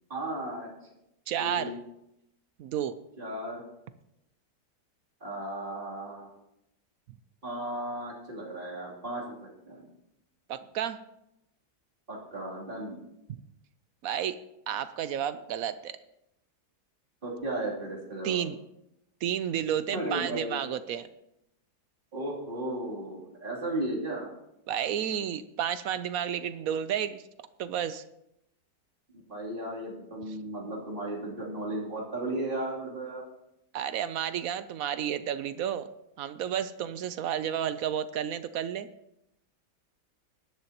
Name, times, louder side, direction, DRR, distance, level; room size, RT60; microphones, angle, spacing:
voice 1, 0.1-0.7 1.4-1.8 3.2-3.6 5.2-6.3 7.4-9.9 12.1-13.0 17.2-18.4 19.9-20.7 22.1-24.3 29.3-33.2, right 1 dB, 30° right, -5 dB, 3.2 m, -35 dB
voice 2, 1.3-1.7 2.6-2.9 10.5-11.0 14.0-14.4 14.7-16.0 18.2-18.6 19.2-21.1 24.7-27.2 27.6-28.0 33.7-35.9 36.2-38.9, right 9 dB, 70° right, 13 dB, 0.9 m, -31 dB
19.5 x 10.5 x 2.9 m, 0.83 s
omnidirectional pair, 1.9 m